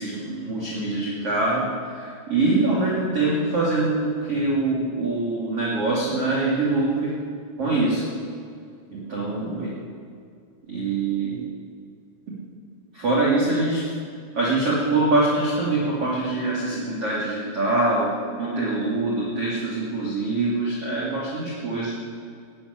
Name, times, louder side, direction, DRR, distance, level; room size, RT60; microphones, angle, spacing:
voice 1, 0.0-7.1 7.6-8.1 8.9-9.7 10.7-11.4 12.9-13.9 14.3-18.1 18.4-21.9, right 2 dB, 35° right, -6 dB, 3.2 m, -24 dB
14.5 x 9.4 x 9.8 m, 2.3 s
omnidirectional pair, 5.4 m